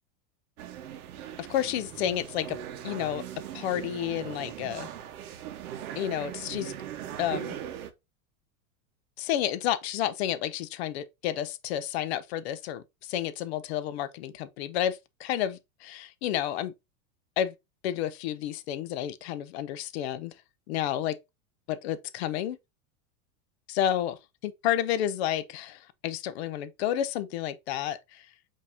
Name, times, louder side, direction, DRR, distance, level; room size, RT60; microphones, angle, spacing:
sound 1, 0.6-7.9, right 10 dB, 80° right, 0.9 m, -39 dB
voice 1, 1.4-2.6 2.8-3.3 3.5-4.9 6.0-6.7 7.2-7.6 9.2-16.7 17.4-17.5 17.8-20.3 20.7-21.2 21.7-22.6 23.7-28.2, left 11 dB, 50° left, 0.5 m, -31 dB
5.2 x 2.7 x 3.3 m
supercardioid pair, 165°, 44 cm